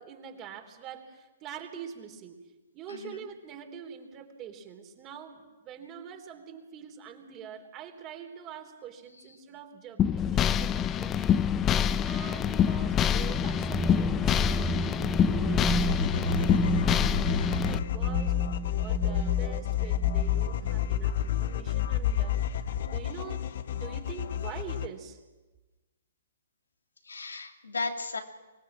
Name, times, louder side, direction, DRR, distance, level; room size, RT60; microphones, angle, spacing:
voice 1, 0.0-2.4 2.7-11.4 12.0-18.4 18.8-22.3 22.9-25.2, right 7 dB, 30° right, 4 dB, 3.5 m, -44 dB
voice 2, 2.9-3.3 27.0-28.2, left 3 dB, 85° left, 4 dB, 3.0 m, -35 dB
sound 1, 10.0-17.8, left 9 dB, 25° left, 0.7 m, -26 dB
sound 2, 13.3-21.0, right 4 dB, 10° right, 0.8 m, -34 dB
sound 3, 15.8-24.9, left 9 dB, 60° left, 1.3 m, -29 dB
25.0 x 20.0 x 7.5 m, 1.2 s
figure-of-eight pair, 120°, 0 cm